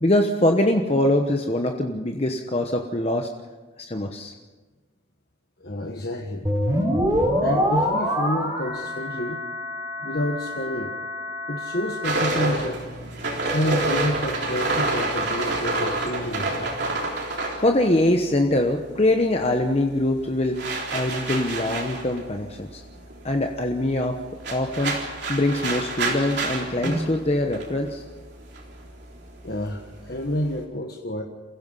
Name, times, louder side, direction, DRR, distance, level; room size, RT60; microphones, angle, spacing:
voice 1, 0.0-3.3 3.9-4.3 17.6-20.6 20.9-22.8 23.2-24.2 24.5-25.0 25.3-28.0, left 1 dB, 30° left, 4 dB, 1.1 m, -23 dB
voice 2, 5.6-6.5 7.4-9.4 10.0-10.9 11.5-12.8 13.5-16.7 29.4-31.2, left 1 dB, 50° left, 1 dB, 1.5 m, -29 dB
sound 1, 6.4-12.2, equal, 15° right, 4.0 m, -26 dB
sound 2, 12.0-18.7 19.0-30.6, right 2 dB, 60° right, 3.7 m, -29 dB
29.0 x 16.0 x 5.6 m, 1.3 s
head